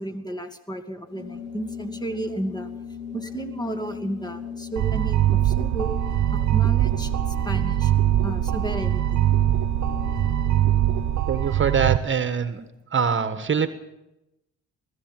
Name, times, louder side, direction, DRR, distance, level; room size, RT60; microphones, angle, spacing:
voice 1, 0.0-2.7 3.1-5.9 6.3-7.9 8.2-9.2, right 2 dB, 15° left, 8 dB, 2.5 m, -33 dB
Organ, 1.1-11.4, left 7 dB, 60° left, 5.4 m, -37 dB
sound 1, 4.8-12.0, right 13 dB, 65° right, 1.0 m, -22 dB
voice 2, 11.3-12.6 12.9-13.7, right 6 dB, 40° right, 11 dB, 1.5 m, -23 dB
20.0 x 14.5 x 9.1 m, 0.90 s
cardioid pair, 90°, 30 cm